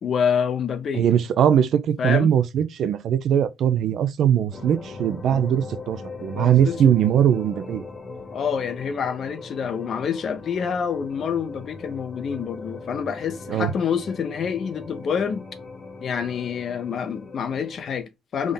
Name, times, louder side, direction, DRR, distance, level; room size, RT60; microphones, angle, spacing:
voice 1, 0.0-1.0 2.0-2.3 5.3-5.4 6.3-6.8 8.3-15.4 16.0-18.5, left 7 dB, 60° left, 0.6 m, -27 dB
voice 2, 0.9-7.8 13.5-13.7, right 9 dB, 70° right, 0.4 m, -20 dB
sound 1, 4.5-18.0, left 3 dB, 40° left, 1.1 m, -40 dB
3.6 x 2.0 x 3.7 m
cardioid pair, 90°, 0 cm